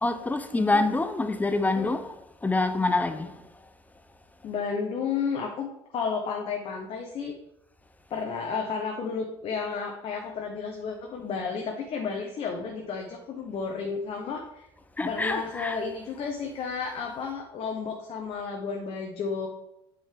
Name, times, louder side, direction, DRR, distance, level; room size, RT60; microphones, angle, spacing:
voice 1, 0.0-2.2 2.4-3.3 15.0-15.8, left 2 dB, 10° left, 0.8 m, -26 dB
voice 2, 4.4-5.7 5.9-7.3 8.1-14.7 15.1-19.5, left 5 dB, 40° left, 1.1 m, -32 dB
8.1 x 5.4 x 3.8 m
figure-of-eight pair, 65°, 14 cm